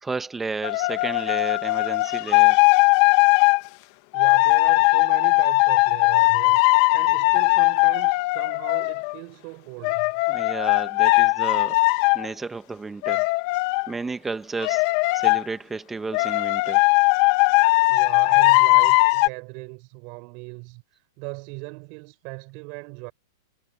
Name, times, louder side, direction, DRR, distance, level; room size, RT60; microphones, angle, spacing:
voice 1, 0.0-2.6 10.3-11.8 12.1-13.3 13.9-14.8 15.1-16.8, right 4 dB, 10° right, 1.6 m, -32 dB
sound 1, 0.6-3.6 4.1-9.1 9.8-12.3 13.0-13.9 14.6-15.4 16.1-19.3, left 26 dB, 50° left, 1.2 m, -19 dB
voice 2, 4.1-10.1 17.9-23.1, right 32 dB, 45° right, 5.6 m, -38 dB
hypercardioid pair, 125°, 2 cm